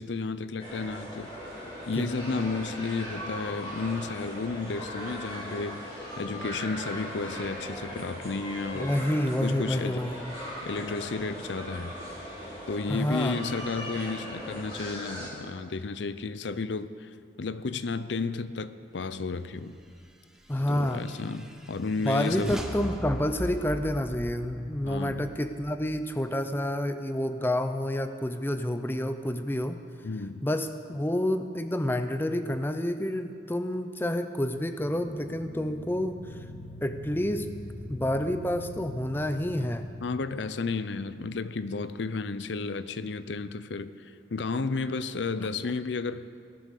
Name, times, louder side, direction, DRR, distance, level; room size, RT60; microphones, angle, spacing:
voice 1, 0.0-1.3 1.9-8.9 9.4-10.0 10.6-11.9 12.7-17.1 17.4-19.7 20.7-22.6 24.8-25.3 30.0-30.4 40.0-46.3, left 4 dB, 90° left, 13 dB, 0.6 m, -32 dB
sound 1, 0.6-15.3, equal, 30° left, 3.8 m, -39 dB
voice 2, 8.7-10.3 12.9-13.4 20.5-21.0 22.0-29.8 30.4-36.2 36.8-37.5 37.9-39.9, left 1 dB, 10° left, 9 dB, 0.6 m, -29 dB
sound 2, 20.4-26.0, equal, 5° right, 1.0 m, -39 dB
sound 3, 34.8-40.3, left 1 dB, 70° left, 1.2 m, -43 dB
18.0 x 12.0 x 6.6 m, 2.3 s
head